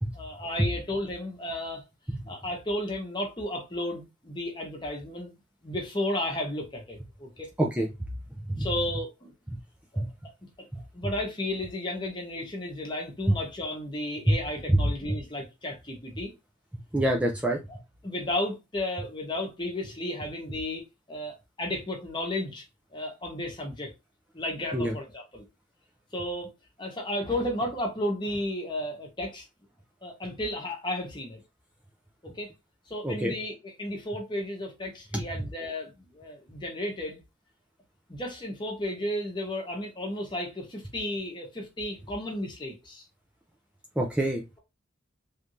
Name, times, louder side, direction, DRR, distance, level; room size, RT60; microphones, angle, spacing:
voice 1, 0.1-1.8 2.3-5.3 5.6-7.5 8.6-9.3 9.9-10.0 10.9-16.3 17.7-17.8 18.0-20.8 21.1-22.6 22.9-23.9 24.3-25.4 26.1-26.5 26.8-29.5 30.0-31.4 32.2-32.5 32.9-37.2 38.1-43.0, left 1 dB, 25° left, 1.0 m, -33 dB
voice 2, 16.9-17.6 24.7-24.9 33.0-33.3 35.1-35.2 44.0-44.4, right 1 dB, 5° right, 0.4 m, -26 dB
3.2 x 2.6 x 3.0 m
head